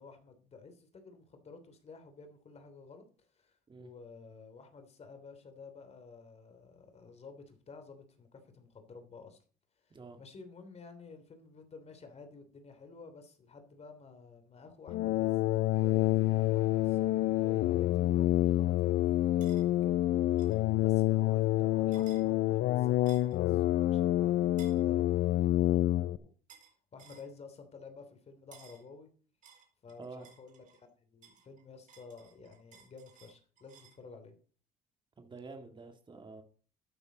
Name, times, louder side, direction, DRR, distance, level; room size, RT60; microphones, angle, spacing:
voice 1, 0.0-9.4 9.8-17.1 17.4-19.0 19.3-26.3 26.9-29.1 29.8-34.4, left 4 dB, 40° left, 3.1 m, -52 dB
sound 1, 14.9-26.2, left 15 dB, 70° left, 0.5 m, -28 dB
sound 2, 15.7-25.5, right 6 dB, 70° right, 4.5 m, -59 dB
sound 3, 19.4-19.6 20.4-20.6 21.9-22.2 23.1-23.4 24.6-24.8 26.5-26.7 27.0-27.3 28.5-28.8 29.4-30.8 31.2-34.0, right 7 dB, 50° right, 4.2 m, -58 dB
voice 2, 35.2-36.4, right 3 dB, 30° right, 2.2 m, -48 dB
12.5 x 9.2 x 4.1 m
cardioid pair, 110°, 17 cm